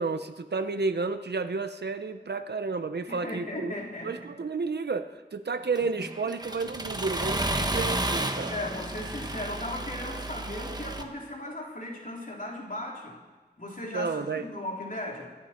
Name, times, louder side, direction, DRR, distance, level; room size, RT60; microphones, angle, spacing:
voice 1, 0.0-3.7 4.0-8.5 13.9-14.5, right 4 dB, 70° right, 9 dB, 0.8 m, -31 dB
voice 2, 3.1-4.4 8.5-13.2 13.6-15.4, left 1 dB, 50° left, -2 dB, 3.7 m, -37 dB
Accelerating revving vroom, 5.8-11.0, right 1 dB, 20° right, 1.2 m, -32 dB
25.0 x 11.0 x 4.4 m, 1.3 s
wide cardioid pair, 65°, 18 cm